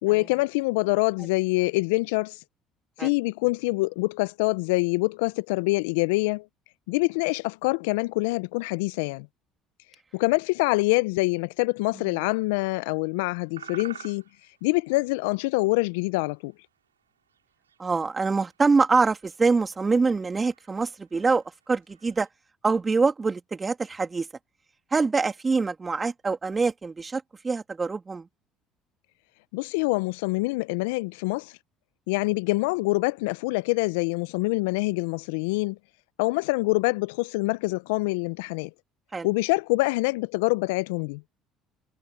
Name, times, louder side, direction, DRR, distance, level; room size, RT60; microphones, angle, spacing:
voice 1, 0.0-2.4 3.0-6.5 6.9-9.3 10.1-14.2 14.6-16.5 29.5-31.5 32.1-35.8 36.2-38.7 39.2-41.2, left 24 dB, 75° left, 0.9 m, -25 dB
sound 1, 13.4-16.6 17.0-17.1 17.3-22.3, right 8 dB, 90° right, 5.9 m, -49 dB
voice 2, 17.8-22.3 22.6-24.3 24.9-28.3 39.1-39.3, right 4 dB, 25° right, 3.2 m, -25 dB
hypercardioid pair, 60°, 0 cm